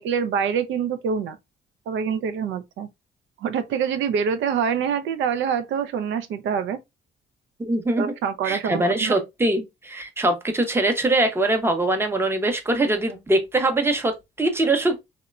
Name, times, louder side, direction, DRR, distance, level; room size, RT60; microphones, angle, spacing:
voice 1, 0.0-1.4 1.9-2.9 3.4-6.8 8.0-9.2, right 7 dB, 75° right, 0.4 m, -25 dB
voice 2, 7.6-8.1 8.4-15.0, right 2 dB, 10° right, 0.6 m, -22 dB
2.9 x 2.1 x 2.3 m
cardioid pair, 90°, 20 cm